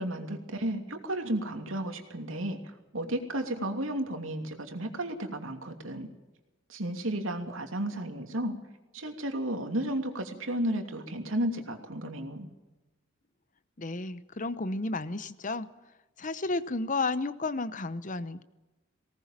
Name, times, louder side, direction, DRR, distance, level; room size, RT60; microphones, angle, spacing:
voice 1, 0.0-6.1 6.7-8.5 8.9-12.5, right 1 dB, 90° right, 5 dB, 2.8 m, -33 dB
voice 2, 13.8-15.7 16.2-18.4, left 3 dB, 40° left, 14 dB, 0.9 m, -32 dB
19.5 x 18.5 x 7.5 m, 1.1 s
head